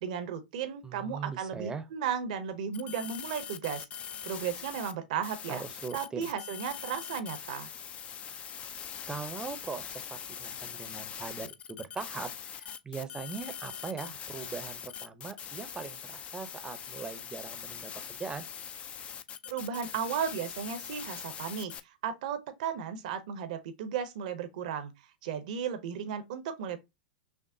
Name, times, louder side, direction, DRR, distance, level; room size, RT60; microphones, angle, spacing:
voice 1, 0.0-5.6 5.9-7.7 19.5-24.9 25.2-26.8, right 7 dB, 55° right, 0.7 m, -35 dB
voice 2, 0.8-1.8 5.5-6.3 9.1-18.4, right 5 dB, 15° right, 0.6 m, -40 dB
sound 1, 2.7-4.9 5.2-21.8, left 8 dB, 25° left, 0.3 m, -42 dB
5.9 x 2.1 x 2.5 m
figure-of-eight pair, 95°, 5 cm